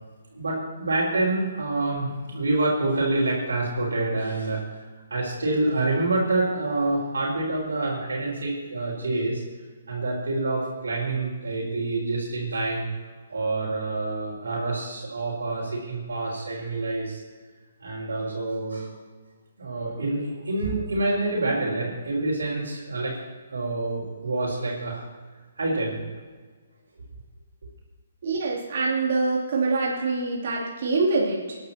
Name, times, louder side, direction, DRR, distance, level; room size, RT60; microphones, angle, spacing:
voice 1, 0.3-4.6 5.1-9.4 9.9-12.9 13.3-17.2 17.8-18.9 19.6-25.0 25.6-26.0, right 2 dB, 75° right, -8 dB, 5.3 m, -27 dB
voice 2, 28.2-31.6, right 3 dB, 55° right, -5 dB, 3.2 m, -25 dB
27.5 x 11.5 x 3.0 m, 1.4 s
figure-of-eight pair, 135°, 0 cm